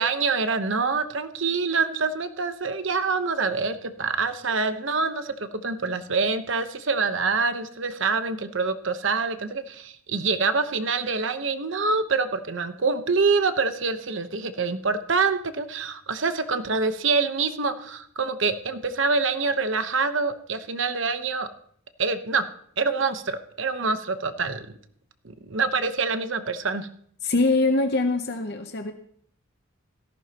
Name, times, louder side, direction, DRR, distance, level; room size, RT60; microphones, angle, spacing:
voice 1, 0.0-21.5 22.0-22.4 22.8-24.7 25.2-26.9, right 4 dB, 65° right, 9 dB, 1.0 m, -26 dB
voice 2, 27.2-28.9, left 2 dB, 50° left, 6 dB, 0.8 m, -23 dB
17.0 x 14.5 x 3.0 m, 0.63 s
head